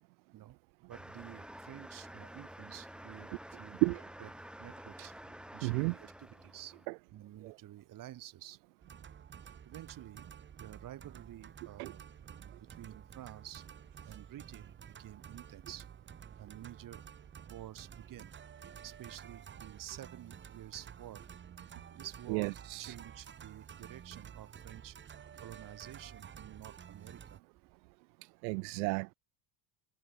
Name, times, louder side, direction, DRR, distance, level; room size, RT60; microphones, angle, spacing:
voice 1, 0.3-3.8 4.2-4.3 4.6-5.1 5.5-6.7 7.1-8.6 9.6-10.3 10.6-13.6 14.1-15.9 16.4-17.1 17.5-18.3 18.8-21.2 22.0-25.0 25.4-27.4, right 13 dB, 40° right, 5.3 m, -50 dB
sound 1, 0.9-6.9, right 1 dB, ahead, 5.2 m, -50 dB
voice 2, 5.6-5.9 7.4-7.5 11.8-11.9 22.3-22.9 28.4-29.1, right 32 dB, 90° right, 0.6 m, -32 dB
sound 2, 8.8-27.4, right 8 dB, 20° right, 1.7 m, -51 dB
cardioid pair, 145°, 50 cm